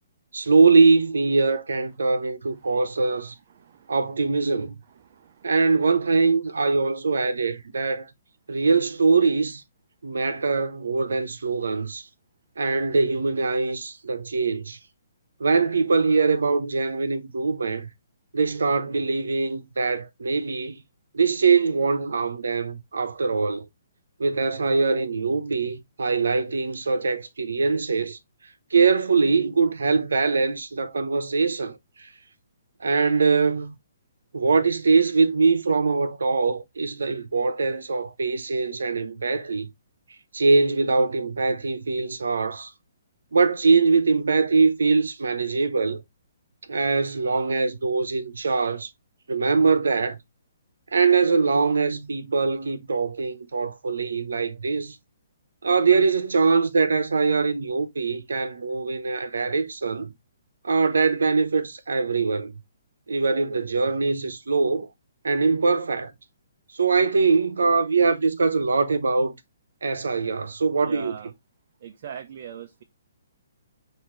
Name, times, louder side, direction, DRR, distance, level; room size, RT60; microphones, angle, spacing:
voice 1, 0.3-3.3 3.9-4.8 5.4-8.1 8.5-9.6 10.0-12.0 12.6-14.8 15.4-17.9 18.3-20.8 21.1-23.6 24.2-28.2 28.7-32.1 32.8-33.7 34.3-39.7 40.3-42.7 43.3-46.0 46.7-48.9 49.3-50.2 50.9-55.0 55.6-60.1 60.6-62.5 63.1-64.9 65.2-66.1 66.8-69.3 69.8-71.1, right 4 dB, 85° right, 0.8 m, -22 dB
voice 2, 3.5-4.0 5.0-5.5 70.8-71.3 71.8-72.8, right 9 dB, 50° right, 0.5 m, -41 dB
5.6 x 2.7 x 3.1 m
hypercardioid pair, 145°, 0 cm